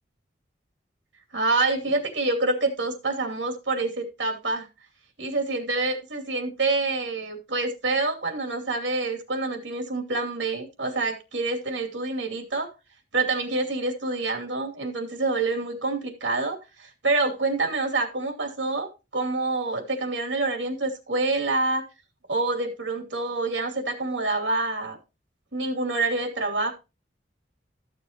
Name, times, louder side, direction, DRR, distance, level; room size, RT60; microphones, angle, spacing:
voice 1, 1.3-4.7 5.2-12.7 13.1-21.8 22.3-25.0 25.5-26.7, right 3 dB, 85° right, 3 dB, 2.8 m, -27 dB
14.0 x 7.0 x 3.0 m, 0.28 s
head